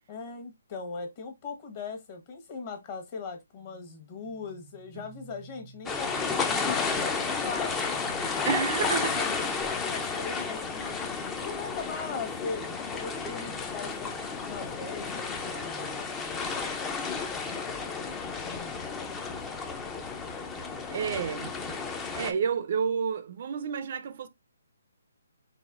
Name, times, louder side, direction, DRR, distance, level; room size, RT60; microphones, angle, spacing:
voice 1, 0.1-9.5 9.8-10.9 11.3-16.7 17.8-19.0, left 5 dB, 30° left, 1.2 m, -40 dB
sound 1, 3.5-9.1, right 4 dB, 75° left, 1.4 m, -51 dB
sound 2, 5.9-22.3, left 5 dB, 10° left, 0.5 m, -32 dB
voice 2, 8.4-9.2 18.8-19.2 20.9-21.5 22.1-24.3, right 6 dB, 45° right, 0.4 m, -30 dB
4.2 x 4.0 x 2.4 m
hypercardioid pair, 160°, 0 cm